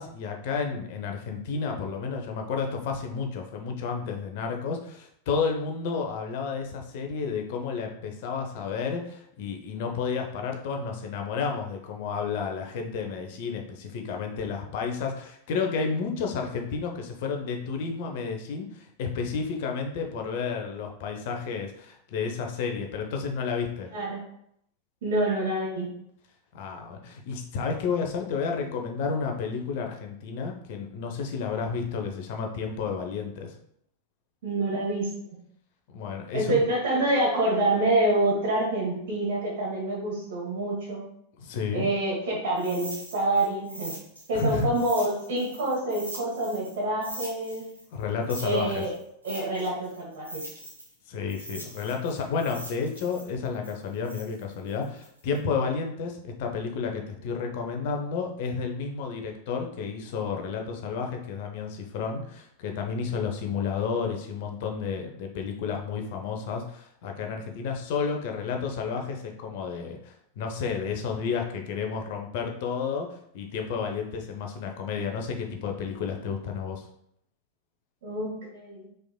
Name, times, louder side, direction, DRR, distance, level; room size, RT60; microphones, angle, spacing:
voice 1, 0.0-23.9 26.5-33.5 35.9-36.7 41.4-41.9 44.3-44.7 47.9-48.9 51.1-76.9, left 5 dB, 50° left, 3 dB, 0.7 m, -31 dB
voice 2, 25.0-25.9 34.4-35.4 36.3-41.0 41.7-43.9 44.3-47.6 48.4-48.9 49.2-50.4 78.0-78.9, right 1 dB, 55° right, -4 dB, 1.3 m, -27 dB
sound 1, 42.5-46.7 47.0-50.9 51.3-55.4, right 1 dB, 80° right, 1.1 m, -42 dB
4.7 x 3.7 x 2.3 m, 0.71 s
figure-of-eight pair, 90°, 0 cm